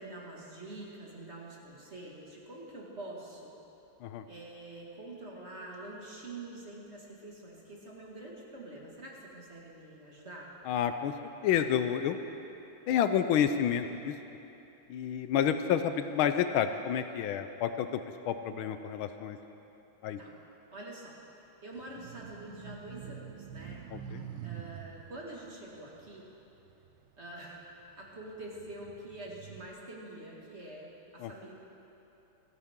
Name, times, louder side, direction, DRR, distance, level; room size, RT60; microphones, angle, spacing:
voice 1, 0.0-3.5 4.3-10.5 20.2-20.3 20.7-21.1 21.6-23.8 24.4-26.3 27.2-27.6 27.9-31.5, right 2 dB, 30° right, -3 dB, 2.1 m, -46 dB
voice 2, 10.7-11.1 11.4-12.2 12.9-14.1 14.9-18.0 18.2-19.4 20.0-20.2 23.9-24.2 31.2-31.3, left 9 dB, 80° left, 9 dB, 1.4 m, -29 dB
sound 1, 21.7-27.3 27.8-29.7, right 9 dB, 80° right, 1.5 m, -46 dB
27.5 x 10.0 x 3.7 m, 3.0 s
omnidirectional pair, 2.3 m